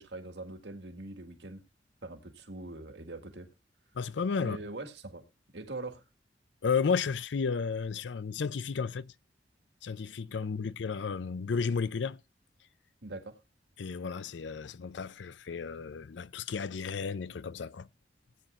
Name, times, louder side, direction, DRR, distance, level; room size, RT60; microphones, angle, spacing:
voice 1, 0.0-1.6 2.0-3.5 4.4-5.2 5.5-6.0 10.6-10.7 13.0-13.4, right 2 dB, 70° right, 1.9 m, -42 dB
voice 2, 3.9-4.6 6.6-9.1 9.8-12.2 13.8-17.9, left 5 dB, 80° left, 0.5 m, -33 dB
18.0 x 9.1 x 2.4 m
head